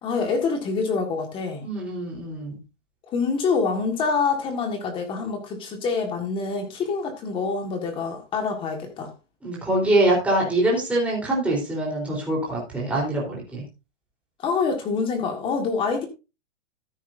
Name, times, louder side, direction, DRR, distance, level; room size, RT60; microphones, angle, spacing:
voice 1, 0.0-1.6 3.1-9.1 14.4-16.1, left 4 dB, 15° left, 1.6 m, -26 dB
voice 2, 1.6-2.6 9.4-13.6, right 1 dB, 5° right, 3.7 m, -24 dB
13.5 x 9.3 x 2.6 m
hypercardioid pair, 170°, 37 cm